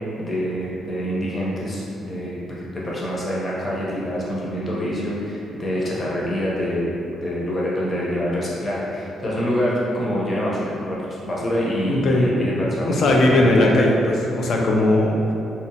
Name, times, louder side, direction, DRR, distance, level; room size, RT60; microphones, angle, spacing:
voice 1, 0.2-6.9 7.2-13.8, equal, 35° left, -6 dB, 0.7 m, -26 dB
voice 2, 11.9-12.3 12.9-15.3, left 1 dB, 60° left, 0 dB, 0.4 m, -18 dB
2.8 x 2.0 x 2.7 m, 2.7 s
cardioid pair, 90°, 0 cm